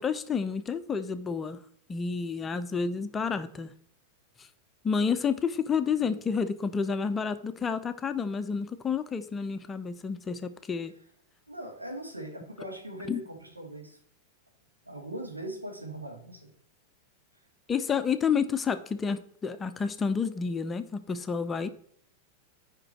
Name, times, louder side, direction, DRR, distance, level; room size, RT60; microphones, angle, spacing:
voice 1, 0.0-1.6 1.9-3.7 4.8-10.9 13.1-13.2 17.7-21.7, left 6 dB, 20° left, 11 dB, 0.6 m, -30 dB
voice 2, 11.5-14.0 14.8-16.5, right 1 dB, 85° right, 1 dB, 1.8 m, -40 dB
8.8 x 5.2 x 4.4 m, 0.63 s
figure-of-eight pair, 90°, 0 cm